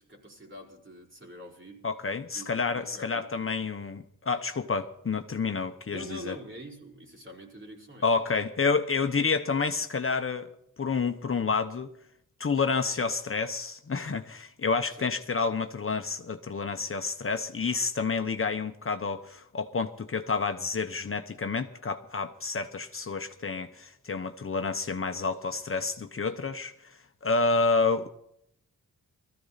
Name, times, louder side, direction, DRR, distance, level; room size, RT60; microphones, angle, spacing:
voice 1, 0.0-1.8 2.3-3.4 5.9-8.1 15.0-15.1, equal, 40° right, 4.4 m, -45 dB
voice 2, 1.8-6.3 8.0-10.5 10.8-11.9 12.4-26.7 27.2-28.1, left 4 dB, 45° left, 1.0 m, -29 dB
20.5 x 14.5 x 4.1 m
wide cardioid pair, 105°, 31 cm